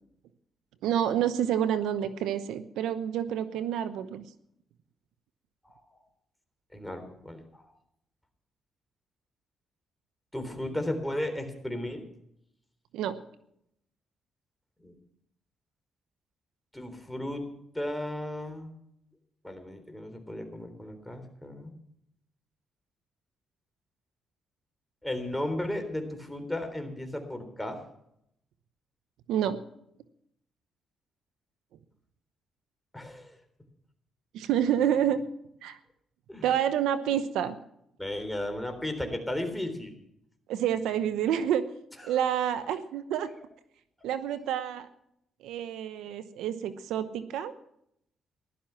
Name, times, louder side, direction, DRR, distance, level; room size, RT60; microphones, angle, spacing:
voice 1, 0.8-4.2 12.9-13.2 29.3-29.6 34.3-35.2 35.6-35.8 36.4-37.6 40.5-41.6 42.0-43.3 44.0-44.9 45.4-47.5, right 10 dB, 85° right, 12 dB, 0.8 m, -28 dB
voice 2, 6.7-7.6 10.3-12.0 14.8-15.0 16.7-17.5 17.7-18.7 19.4-21.7 25.0-27.8 32.9-33.3 36.3-36.5 38.0-39.9 42.0-42.2 43.3-43.4, left 1 dB, 5° left, 6 dB, 3.7 m, -35 dB
15.5 x 12.0 x 5.8 m, 0.76 s
supercardioid pair, 65°, 0 cm